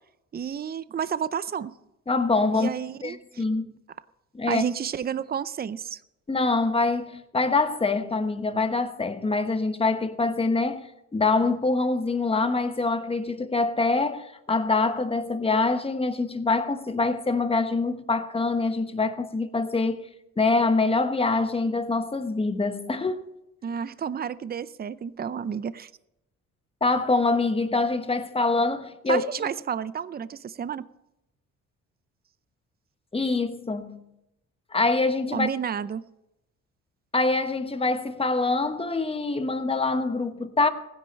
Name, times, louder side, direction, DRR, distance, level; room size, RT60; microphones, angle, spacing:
voice 1, 0.3-1.7 2.5-3.4 4.5-6.0 23.6-25.9 29.1-30.9 35.3-36.0, right 8 dB, 30° right, 0.6 m, -31 dB
voice 2, 2.1-2.7 3.0-3.7 4.3-4.6 6.3-20.1 20.4-23.3 26.8-29.3 33.1-34.0 34.7-35.5 37.1-40.7, left 3 dB, 20° left, 1.2 m, -25 dB
15.5 x 10.5 x 5.4 m
cardioid pair, 90°, 30 cm